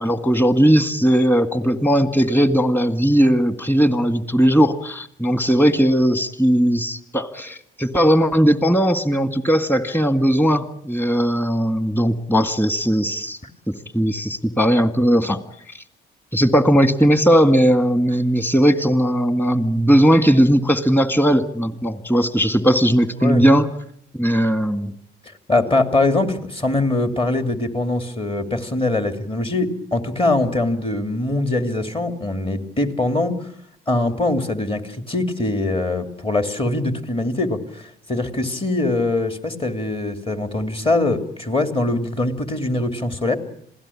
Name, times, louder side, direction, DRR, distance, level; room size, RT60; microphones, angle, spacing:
voice 1, 0.0-13.4 13.7-15.4 16.3-23.7 24.1-24.9, equal, 10° left, 10 dB, 2.0 m, -18 dB
voice 2, 25.5-33.4 33.9-43.4, left 2 dB, 25° left, 7 dB, 2.9 m, -22 dB
26.5 x 17.0 x 8.7 m, 0.67 s
cardioid pair, 90°, 20 cm